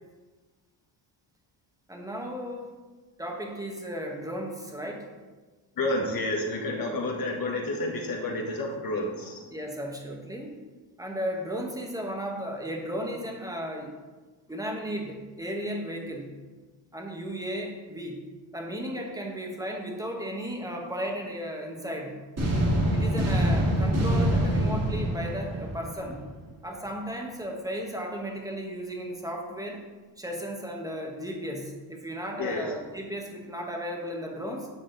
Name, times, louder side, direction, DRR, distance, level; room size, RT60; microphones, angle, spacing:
voice 1, 1.9-2.7 3.2-5.1 9.5-10.6 11.0-13.9 14.5-16.3 16.9-18.2 18.5-22.2 22.9-26.2 26.6-29.8 30.2-34.7, equal, 5° right, 0 dB, 1.1 m, -35 dB
voice 2, 5.8-9.4 32.4-32.6, left 2 dB, 45° left, 1 dB, 1.3 m, -30 dB
sound 1, 22.4-26.3, right 1 dB, 30° right, 1.9 m, -25 dB
9.0 x 6.3 x 3.9 m, 1.3 s
wide cardioid pair, 165°, 49 cm